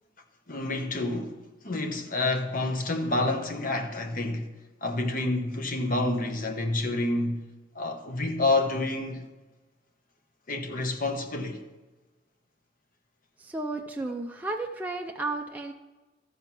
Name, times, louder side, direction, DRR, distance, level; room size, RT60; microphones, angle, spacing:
voice 1, 0.5-4.5 4.8-7.5 7.7-9.3 10.5-11.6, left 2 dB, 50° left, 1.1 m, -28 dB
voice 2, 13.4-15.7, right 2 dB, 10° right, 0.5 m, -33 dB
13.5 x 5.7 x 6.0 m
head